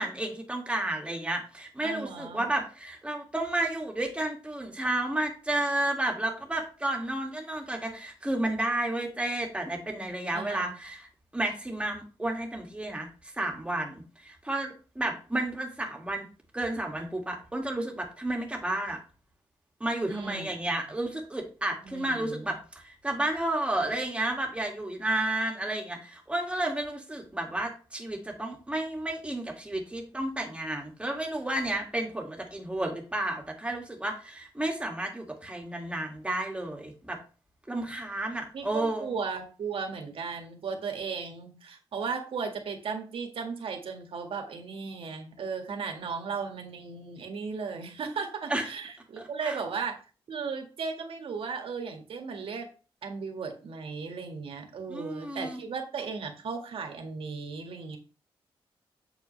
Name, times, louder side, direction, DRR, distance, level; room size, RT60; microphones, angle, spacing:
voice 1, 0.0-11.1 11.3-13.1 13.4-16.3 16.5-19.0 19.8-37.2 37.7-39.1 48.5-48.7 49.2-49.6 54.9-55.6, right 1 dB, 10° right, 1 dB, 2.2 m, -32 dB
voice 2, 1.8-2.5 10.3-10.8 20.1-20.5 21.8-22.5 38.5-50.0 50.3-52.7 53.0-58.0, right 5 dB, 70° right, 3 dB, 1.9 m, -36 dB
8.5 x 6.7 x 3.3 m, 0.36 s
wide cardioid pair, 110°, 10 cm